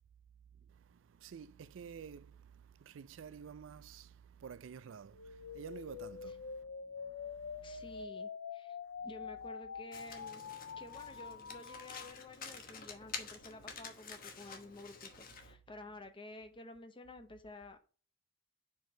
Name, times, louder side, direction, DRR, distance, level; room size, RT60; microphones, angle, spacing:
voice 1, 0.5-8.1, right 7 dB, 80° right, 0.4 m, -51 dB
sound 1, 5.1-12.1, left 6 dB, 75° left, 0.5 m, -46 dB
voice 2, 7.6-8.8 9.0-10.4 10.8-17.8, left 2 dB, 25° left, 0.8 m, -52 dB
Domestic sounds home sounds, 9.9-15.5, left 5 dB, 50° left, 1.0 m, -49 dB
4.9 x 4.5 x 5.0 m
head